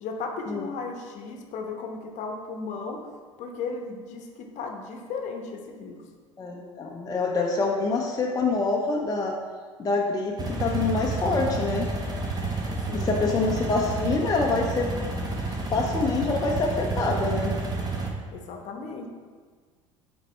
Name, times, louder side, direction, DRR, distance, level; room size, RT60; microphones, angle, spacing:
voice 1, 0.0-3.0 3.4-6.0 12.9-13.2 18.3-19.1, left 4 dB, 45° left, 3 dB, 0.9 m, -35 dB
voice 2, 6.4-9.3 9.8-11.9 12.9-15.3 15.7-17.6, left 3 dB, 20° left, 0 dB, 0.6 m, -26 dB
sound 1, 10.4-18.1, right 3 dB, 25° right, 1.1 m, -30 dB
7.5 x 4.4 x 3.2 m, 1.5 s
figure-of-eight pair, 70°, 17 cm